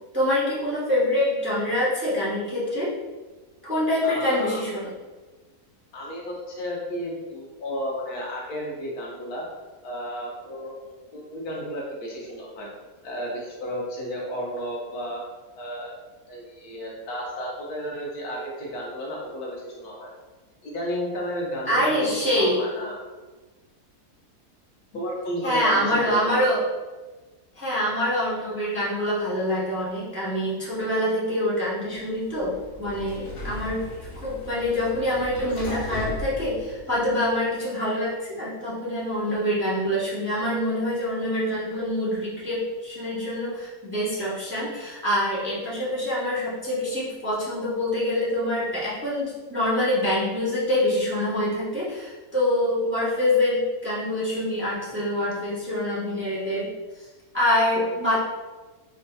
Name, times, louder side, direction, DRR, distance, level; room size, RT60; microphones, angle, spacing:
voice 1, 0.1-2.9 3.6-4.9 21.7-22.6 25.4-26.6 27.6-32.5 32.8-33.8 34.1-56.7 57.3-58.2, left 1 dB, 10° right, -8 dB, 0.8 m, -25 dB
voice 2, 4.0-4.6 5.9-9.5 9.8-10.7 11.1-12.7 13.0-15.2 15.6-15.9 16.3-20.1 20.6-23.0 24.9-26.4, equal, 85° left, -3 dB, 1.4 m, -32 dB
Sliding door, 32.2-37.3, left 1 dB, 40° left, 0.9 m, -37 dB
5.1 x 2.7 x 2.2 m, 1.2 s
omnidirectional pair, 1.6 m